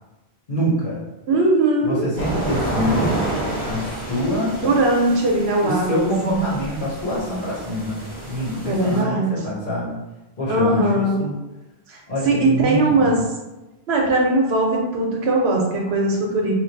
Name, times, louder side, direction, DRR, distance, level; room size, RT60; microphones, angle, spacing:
voice 1, 0.5-1.0 1.8-3.2 3.6-4.6 5.6-8.0 8.3-10.0 10.4-11.3 12.1-13.2, equal, 55° left, -6 dB, 1.2 m, -25 dB
voice 2, 1.3-2.1 4.6-6.4 8.7-9.3 10.5-11.2 11.9-12.0 12.2-13.2 13.9-16.5, right 2 dB, 85° right, -1 dB, 1.1 m, -20 dB
sound 1, 2.2-9.0, right 1 dB, 20° right, 1.0 m, -29 dB
3.1 x 2.5 x 3.9 m, 1.0 s
omnidirectional pair, 1.1 m